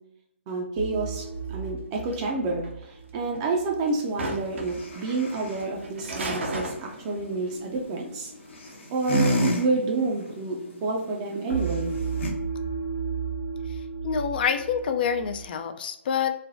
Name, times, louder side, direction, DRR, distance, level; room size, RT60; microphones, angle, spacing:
voice 1, 0.5-8.3 8.9-11.9, right 3 dB, 30° right, 0 dB, 0.5 m, -29 dB
sound 1, 0.8-3.8 11.5-15.5, right 5 dB, 85° left, 0.9 m, -34 dB
sound 2, 1.1-2.9 3.3-4.9 5.2-7.3 7.7-7.8 8.4-8.9, right 2 dB, 70° right, 0.7 m, -35 dB
sound 3, 3.8-12.3, equal, 65° left, 0.9 m, -33 dB
voice 2, 14.0-16.4, left 7 dB, 50° left, 7 dB, 0.3 m, -27 dB
3.2 x 2.2 x 2.5 m, 0.84 s
hypercardioid pair, 140°, 7 cm